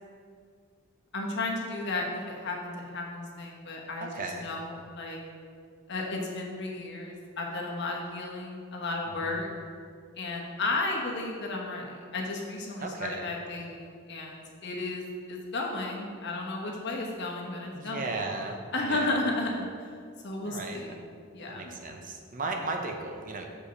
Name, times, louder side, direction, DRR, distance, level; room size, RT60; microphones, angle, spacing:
voice 1, 1.1-5.2 5.9-9.5 10.2-18.3 18.7-19.9 20.2-21.0 21.3-21.7, left 2 dB, 50° left, -1 dB, 1.1 m, -34 dB
voice 2, 4.0-4.5 9.2-9.3 12.8-13.3 17.7-18.6 18.8-19.1 20.4-20.8 21.5-23.4, right 3 dB, 35° right, 2 dB, 0.7 m, -35 dB
6.7 x 5.0 x 5.1 m, 2.2 s
head